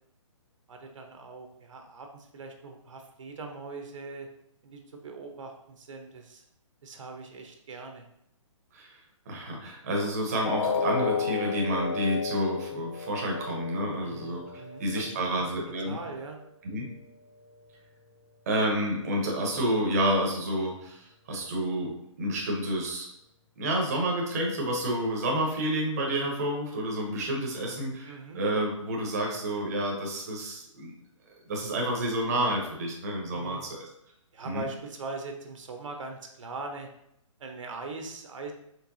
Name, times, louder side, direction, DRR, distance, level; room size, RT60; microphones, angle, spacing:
voice 1, 0.7-4.3 4.6-6.4 6.8-8.1 14.0-15.5 15.9-16.4 28.0-28.4 33.3-33.7 34.3-36.9 37.4-38.5, right 3 dB, 65° right, 4 dB, 0.7 m, -41 dB
voice 2, 9.3-14.4 14.8-16.0 16.6-16.9 18.5-23.1 23.6-30.9 31.5-33.8 34.4-34.7, right 1 dB, 30° right, -1 dB, 0.7 m, -29 dB
sound 1, 10.4-16.4 16.8-17.0 17.5-17.6, left 5 dB, 80° left, 0.6 m, -33 dB
4.6 x 3.2 x 2.6 m, 0.77 s
hypercardioid pair, 170°, 17 cm